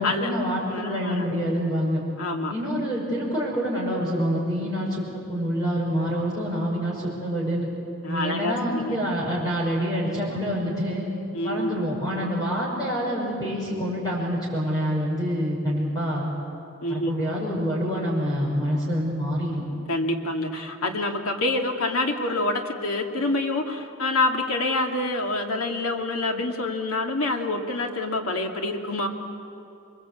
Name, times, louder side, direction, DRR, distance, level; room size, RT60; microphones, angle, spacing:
voice 1, 0.0-2.0 2.5-7.7 8.1-11.1 11.4-16.3 16.9-19.6, equal, 20° left, -5 dB, 5.8 m, -26 dB
voice 2, 0.7-1.3 2.2-2.5 8.0-8.9 11.3-11.8 16.8-17.1 19.9-29.1, left 2 dB, 85° left, 3 dB, 2.4 m, -27 dB
26.0 x 23.5 x 8.4 m, 2.8 s
head